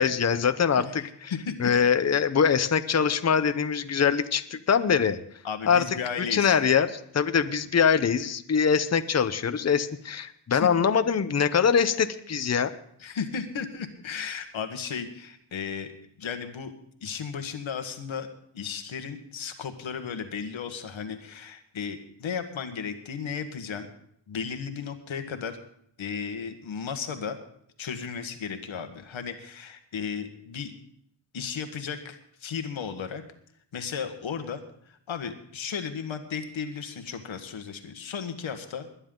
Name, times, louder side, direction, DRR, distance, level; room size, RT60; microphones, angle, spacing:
voice 1, 0.0-1.3 1.6-5.2 5.7-5.8 6.2-12.7, left 7 dB, 35° left, 11 dB, 0.8 m, -23 dB
voice 2, 5.4-6.6 10.5-10.7 13.0-15.9 16.2-16.7 17.0-18.3 18.5-23.9 24.3-25.6 26.0-27.4 27.8-30.7 31.3-33.2 33.7-34.6 34.9-38.9, left 6 dB, 85° left, 7 dB, 1.6 m, -34 dB
21.0 x 9.9 x 3.9 m, 0.68 s
wide cardioid pair, 85°, 46 cm